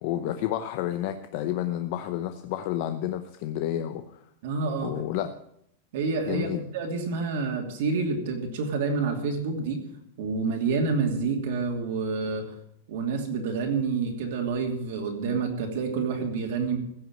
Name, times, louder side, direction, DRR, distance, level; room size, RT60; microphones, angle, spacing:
voice 1, 0.0-4.2 4.8-5.3 6.3-6.7, left 12 dB, 40° left, 8 dB, 0.7 m, -30 dB
voice 2, 4.4-4.9 5.9-9.8 10.2-12.5 12.9-16.8, right 4 dB, 55° right, 2 dB, 2.8 m, -28 dB
16.0 x 6.2 x 8.9 m, 0.73 s
supercardioid pair, 170°, 0 cm